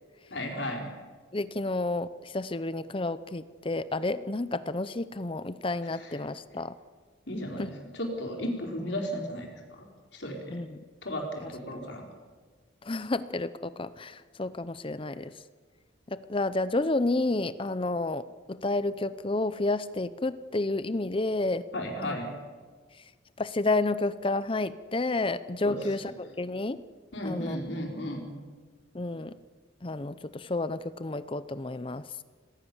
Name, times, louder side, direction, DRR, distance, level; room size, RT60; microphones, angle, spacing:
voice 1, 0.3-0.9 6.0-6.1 7.3-9.5 9.8-9.9 10.1-10.6 11.0-12.1 21.7-22.3 25.6-25.8 27.1-28.2, equal, 65° left, 1 dB, 4.9 m, -34 dB
voice 2, 1.3-6.7 7.6-7.7 10.5-10.8 11.4-11.5 12.8-15.3 16.1-21.7 22.0-22.2 23.4-26.8 27.2-27.6 28.9-29.3 29.8-32.0, left 2 dB, 25° left, 14 dB, 0.6 m, -30 dB
27.0 x 19.5 x 7.2 m, 1.5 s
head